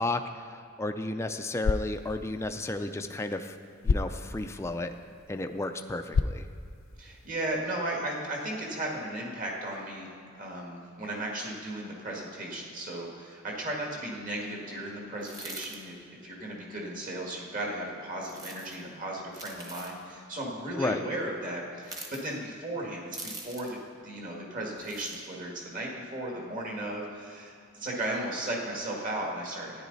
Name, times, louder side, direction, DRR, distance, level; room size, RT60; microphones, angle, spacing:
voice 1, 0.0-3.6 3.8-4.9 5.3-6.4 20.8-21.0, left 2 dB, 15° left, 6 dB, 0.4 m, -33 dB
sound 1, 1.5-7.5, left 4 dB, 75° left, 0.4 m, -34 dB
voice 2, 7.0-15.9 16.2-23.8 24.0-29.8, right 1 dB, 40° right, -2 dB, 1.8 m, -35 dB
sound 2, 15.2-15.8 18.2-18.8 19.3-20.0 21.8-22.2 23.1-23.8 24.8-25.2, right 2 dB, 20° right, 1.2 m, -43 dB
13.5 x 9.9 x 4.0 m, 2.6 s
head